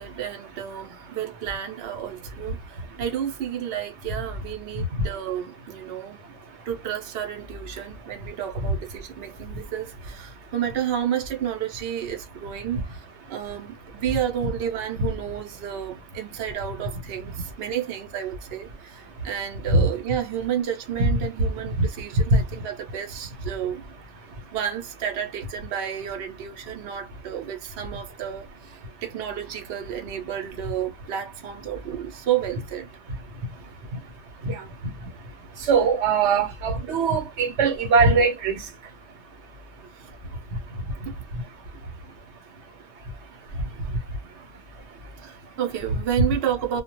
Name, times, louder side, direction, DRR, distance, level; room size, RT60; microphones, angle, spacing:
voice 1, 0.0-6.2 6.7-23.8 24.5-32.9 39.9-40.1 41.0-41.1 45.2-46.8, right 9 dB, 65° right, 0.8 m, -31 dB
voice 2, 4.7-5.1 5.8-6.7 9.4-9.7 10.3-10.5 19.0-19.3 19.7-19.9 21.0-21.1 21.8-21.9 22.3-22.6 24.2-24.6 26.8-27.0 28.8-29.0 33.2-45.6, right 3 dB, 80° right, 1.1 m, -26 dB
2.3 x 2.1 x 2.8 m
omnidirectional pair, 1.2 m